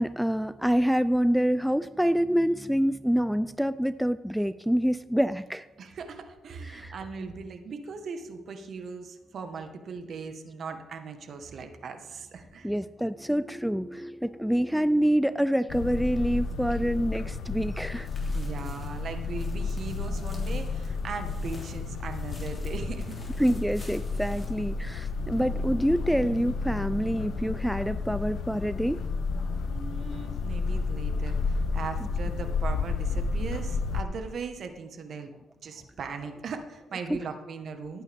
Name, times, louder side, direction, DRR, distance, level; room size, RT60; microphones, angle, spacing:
voice 1, 0.0-5.7 6.7-6.9 12.6-18.1 23.4-29.0 37.1-37.2, equal, ahead, 14 dB, 0.3 m, -26 dB
voice 2, 5.8-12.7 18.3-23.2 29.7-35.3 35.6-38.0, right 5 dB, 55° right, 7 dB, 1.4 m, -39 dB
sound 1, 15.7-34.0, left 4 dB, 70° left, 0.9 m, -31 dB
sound 2, 17.7-25.4 25.7-25.8 26.3-26.4, left 2 dB, 25° left, 3.2 m, -52 dB
18.0 x 8.5 x 3.5 m, 1.1 s
cardioid pair, 90°, 0 cm